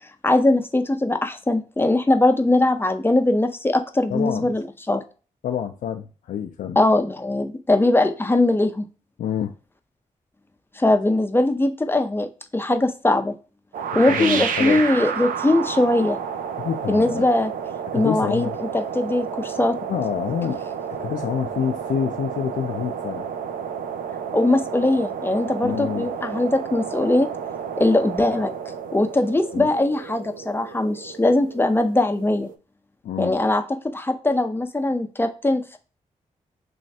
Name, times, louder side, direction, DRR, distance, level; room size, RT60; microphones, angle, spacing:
voice 1, 0.2-5.0 6.8-8.8 10.8-12.3 12.5-13.3 13.9-16.2 16.9-17.5 17.9-18.5 18.7-19.8 24.3-27.3 27.8-28.5 28.9-32.5 33.2-33.6 33.9-35.8, left 2 dB, 15° left, 7 dB, 0.5 m, -20 dB
voice 2, 4.1-4.5 5.4-6.8 9.2-9.5 13.9-14.8 16.6-17.3 17.9-18.6 19.9-20.6 21.0-23.3 25.6-26.1 29.5-29.7 33.0-33.4, left 8 dB, 80° left, 4 dB, 0.4 m, -27 dB
sound 1, 13.7-32.6, right 7 dB, 85° right, 0.4 m, -31 dB
3.1 x 3.1 x 2.7 m, 0.35 s
cardioid pair, 65°, 14 cm